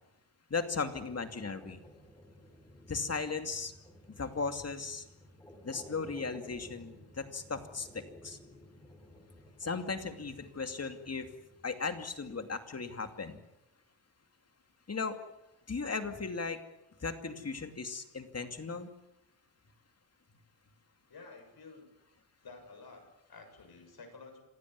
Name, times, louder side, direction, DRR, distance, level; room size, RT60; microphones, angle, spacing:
voice 1, 0.5-1.8 2.9-3.7 4.1-5.0 5.6-8.4 9.6-11.3 11.6-13.4 14.9-15.2 15.7-16.6 17.0-18.9, left 4 dB, 35° left, 7 dB, 2.6 m, -36 dB
sound 1, 0.7-12.6, left 1 dB, 5° left, 5.2 m, -55 dB
voice 2, 21.1-21.9 22.4-24.4, left 4 dB, 55° left, 5 dB, 7.3 m, -51 dB
27.5 x 16.0 x 9.6 m, 0.94 s
wide cardioid pair, 115°, 45 cm